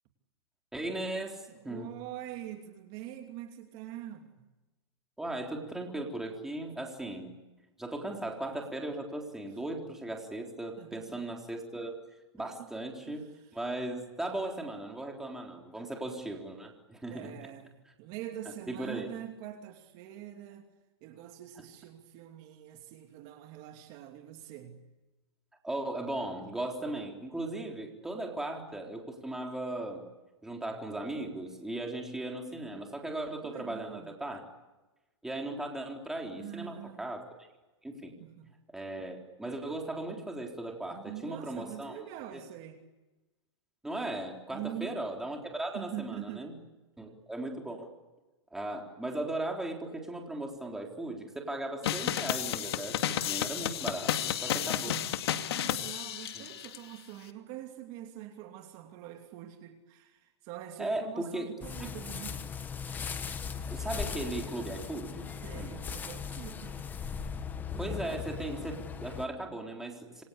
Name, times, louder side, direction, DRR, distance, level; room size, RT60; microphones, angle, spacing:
voice 1, 0.7-1.9 5.2-7.3 7.8-11.9 12.3-13.2 13.5-17.3 18.7-19.1 25.6-30.0 30.4-34.4 35.2-37.2 37.8-38.1 38.7-42.0 42.3-42.4 43.8-46.5 47.0-47.9 48.5-55.0 56.3-56.4 60.8-61.5 61.8-61.9 63.7-65.3 65.5-65.7 67.8-70.2, right 1 dB, 5° right, 1 dB, 3.8 m, -37 dB
voice 2, 1.5-4.5 9.4-9.6 10.8-11.2 12.4-12.7 13.1-13.6 17.1-20.7 21.0-24.8 33.4-34.1 36.3-37.0 38.2-38.5 40.9-42.8 44.5-45.0 45.7-46.5 54.4-55.1 55.5-62.5 65.4-66.8, right 12 dB, 35° right, 5 dB, 2.8 m, -44 dB
sound 1, 51.8-56.8, left 11 dB, 60° left, 2.5 m, -32 dB
sound 2, 61.6-69.3, left 6 dB, 10° left, 1.5 m, -38 dB
27.5 x 25.0 x 8.6 m, 1.1 s
hypercardioid pair, 160°, 15 cm